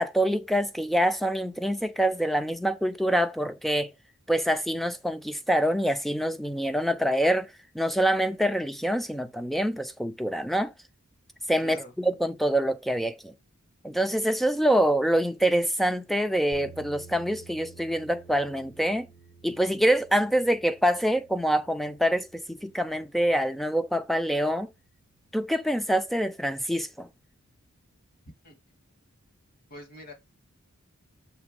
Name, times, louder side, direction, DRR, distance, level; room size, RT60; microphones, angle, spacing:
voice 1, 0.0-3.9 4.3-7.5 7.7-10.7 11.5-13.3 13.8-19.1 19.4-24.7 25.3-27.1, equal, ahead, 0.4 m, -25 dB
voice 2, 11.6-11.9 28.4-28.6 29.7-30.1, left 1 dB, 40° left, 1.9 m, -45 dB
sound 1, 16.5-24.6, right 5 dB, 75° left, 4.9 m, -53 dB
7.1 x 3.5 x 5.2 m
head